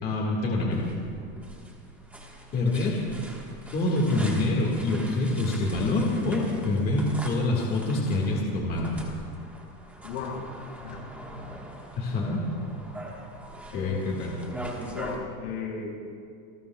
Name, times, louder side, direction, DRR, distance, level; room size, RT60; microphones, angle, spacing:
voice 1, 0.0-0.8 2.5-3.0 3.7-9.0 12.0-12.4 13.7-14.3, left 2 dB, 20° left, -2 dB, 1.7 m, -26 dB
sound 1, 0.7-15.2, right 1 dB, 5° right, 1.3 m, -43 dB
voice 2, 10.0-10.5 10.8-11.2 13.7-14.2 14.8-15.9, left 5 dB, 65° left, -2 dB, 5.2 m, -35 dB
28.0 x 19.5 x 2.3 m, 2.3 s
supercardioid pair, 165°, 43 cm